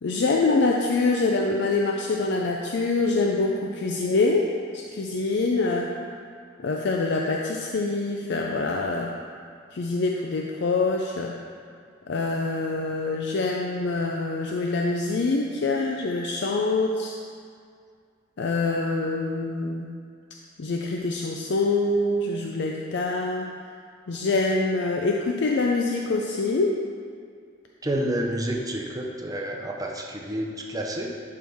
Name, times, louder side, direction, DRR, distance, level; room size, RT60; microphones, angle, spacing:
voice 1, 0.0-5.9 6.6-9.1 9.7-11.3 12.1-17.1 18.4-19.9 20.6-23.5 24.1-26.8, left 3 dB, 60° left, 0 dB, 0.5 m, -25 dB
voice 2, 27.8-31.1, right 1 dB, 20° right, 0 dB, 0.7 m, -29 dB
11.0 x 4.7 x 3.5 m, 2.2 s
head